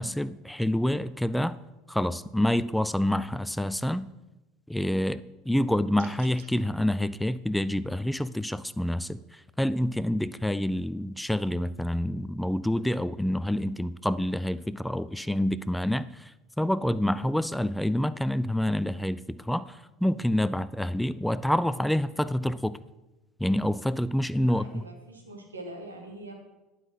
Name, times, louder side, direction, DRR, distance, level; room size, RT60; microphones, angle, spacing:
voice 1, 0.0-1.6 1.9-4.1 4.7-22.8 23.4-24.8, left 1 dB, 5° left, 16 dB, 0.3 m, -27 dB
sound 1, 5.9-6.5, right 7 dB, 70° right, 1.2 m, -50 dB
voice 2, 24.5-26.3, right 1 dB, 90° right, 2 dB, 1.8 m, -43 dB
11.0 x 5.8 x 5.9 m, 1.1 s
hypercardioid pair, 75°, 0 cm